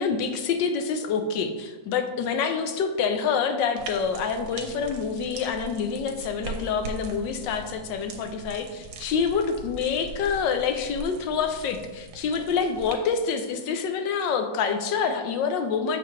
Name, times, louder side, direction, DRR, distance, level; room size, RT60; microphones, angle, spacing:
voice 1, 0.0-16.0, left 6 dB, 80° left, 7 dB, 1.3 m, -27 dB
sound 1, 3.8-12.9, right 4 dB, 85° right, 1.5 m, -41 dB
6.9 x 5.8 x 3.2 m, 1.2 s
omnidirectional pair, 2.0 m